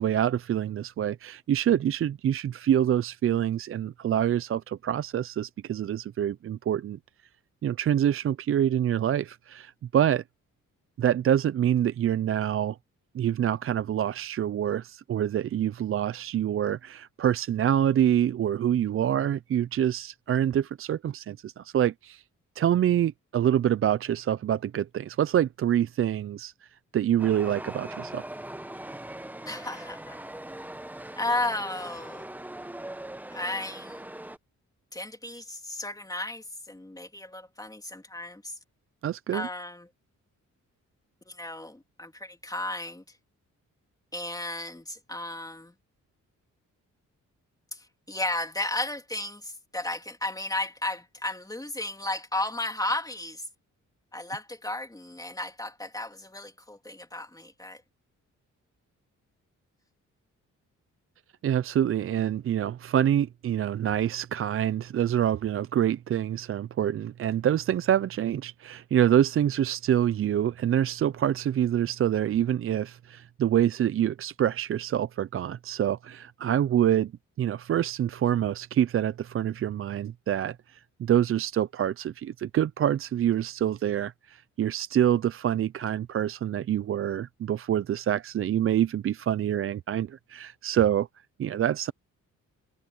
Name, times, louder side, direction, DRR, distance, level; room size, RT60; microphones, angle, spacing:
voice 1, 0.0-7.0 7.6-10.2 11.0-12.8 13.1-22.2 22.6-28.2 39.0-39.5 61.4-77.1 77.4-91.1 91.4-91.9, right 10 dB, 45° right, 0.4 m, -26 dB
Chatter / Subway metro underground, 27.2-34.4, right 1 dB, 5° right, 0.9 m, -41 dB
voice 2, 29.5-30.2 31.2-32.3 33.3-34.0 34.9-38.6 39.3-39.9 41.3-43.0 44.1-45.7 47.7-53.5 54.1-57.8, left 2 dB, 10° left, 3.2 m, -34 dB
cardioid pair, 115°, 31 cm